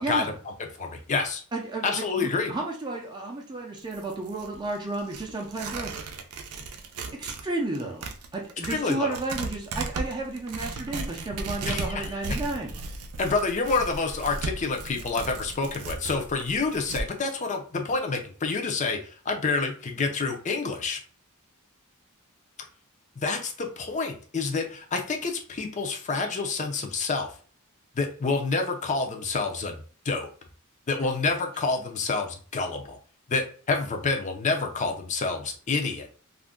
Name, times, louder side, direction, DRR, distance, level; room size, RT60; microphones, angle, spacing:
voice 1, 0.0-0.3 1.5-6.2 7.1-8.0 8.3-12.7, right 2 dB, 20° right, 0 dB, 0.4 m, -32 dB
voice 2, 0.8-1.4 1.8-2.5 8.6-9.2 11.6-12.1 13.2-21.0 23.2-27.3 27.9-29.8 30.0-30.3 30.9-33.0 33.3-36.1, left 4 dB, 35° left, 3 dB, 0.5 m, -28 dB
Tearing, 3.8-7.5 7.7-17.1, right 3 dB, 85° right, 0.5 m, -36 dB
2.5 x 2.1 x 3.6 m, 0.42 s
head